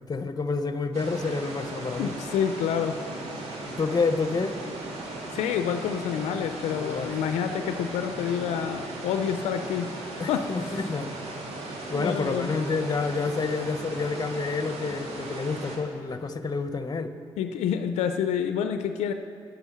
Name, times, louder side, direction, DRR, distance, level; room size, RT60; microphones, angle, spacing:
voice 1, 0.1-2.1 3.8-4.6 6.8-7.3 10.2-11.4 11.9-17.1, left 4 dB, 35° left, 9 dB, 0.9 m, -29 dB
sound 1, 0.9-15.8, right 2 dB, 75° right, 2.0 m, -37 dB
voice 2, 2.0-3.0 5.3-9.9 10.3-10.5 11.9-12.6 17.4-19.1, left 8 dB, 90° left, 8 dB, 0.5 m, -28 dB
10.5 x 9.5 x 6.0 m, 2.4 s
supercardioid pair, 60°, 11 cm